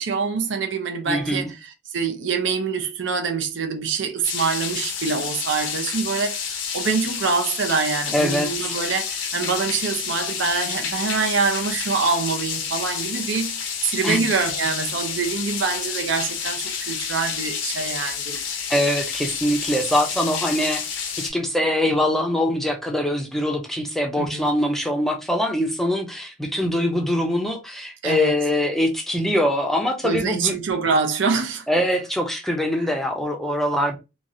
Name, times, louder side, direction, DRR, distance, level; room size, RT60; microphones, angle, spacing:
voice 1, 0.0-18.4 24.2-24.5 28.0-28.4 30.0-31.7 32.8-32.9, right 5 dB, 70° right, 0.6 m, -25 dB
voice 2, 1.1-1.5 8.1-8.7 14.0-14.2 18.7-20.8 21.2-30.5 31.7-34.0, left 1 dB, ahead, 0.5 m, -23 dB
sound 1, 4.2-21.3, left 6 dB, 75° left, 0.6 m, -29 dB
3.0 x 2.4 x 2.5 m
head